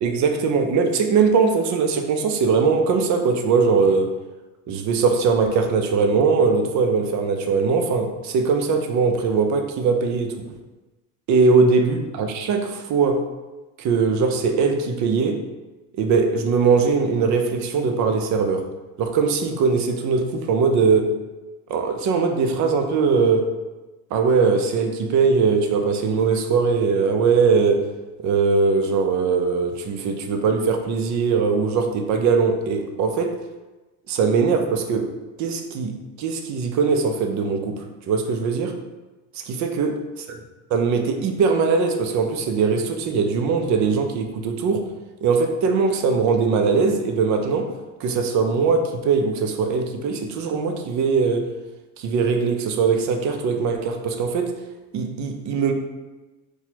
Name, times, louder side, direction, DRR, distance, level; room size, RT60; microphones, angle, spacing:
voice 1, 0.0-4.1 4.7-10.4 11.3-13.2 13.8-15.4 16.0-18.7 19.0-21.1 21.7-23.5 24.1-27.9 28.2-33.4 34.1-35.1 35.4-38.8 39.5-39.9 40.7-44.9 45.2-47.7 48.0-51.5 52.0-54.6 54.9-55.7, right 5 dB, 50° right, 5 dB, 0.6 m, -21 dB
4.1 x 2.3 x 2.8 m, 1.2 s
supercardioid pair, 95°, 38 cm